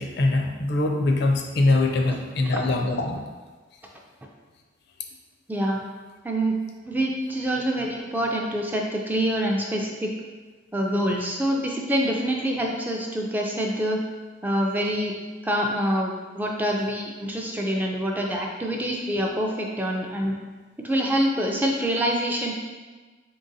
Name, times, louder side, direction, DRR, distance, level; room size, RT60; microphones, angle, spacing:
voice 1, 0.0-3.2, left 2 dB, 60° left, 2 dB, 0.5 m, -23 dB
voice 2, 5.5-5.8 6.2-6.6 6.9-10.1 10.7-14.0 14.4-15.1 15.4-20.3 20.8-22.5, equal, 10° right, 0 dB, 0.3 m, -26 dB
3.7 x 3.6 x 2.6 m, 1.4 s
head